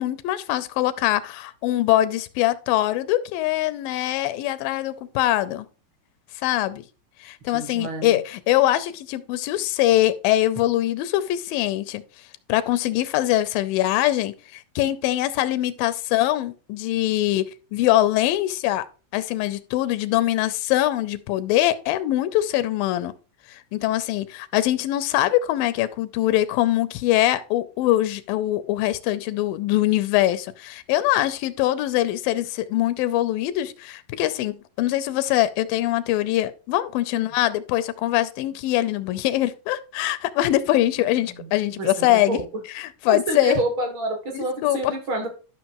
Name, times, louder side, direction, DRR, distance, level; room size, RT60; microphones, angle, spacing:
voice 1, 0.0-5.7 6.4-6.8 7.2-12.0 12.5-18.9 19.1-23.1 23.5-42.4 42.7-43.6 44.3-44.9, left 14 dB, 90° left, 2.4 m, -23 dB
voice 2, 7.5-8.2 37.1-37.2 41.3-42.4 43.1-45.3, right 2 dB, 45° right, 1.8 m, -28 dB
12.0 x 5.9 x 3.0 m
omnidirectional pair, 4.0 m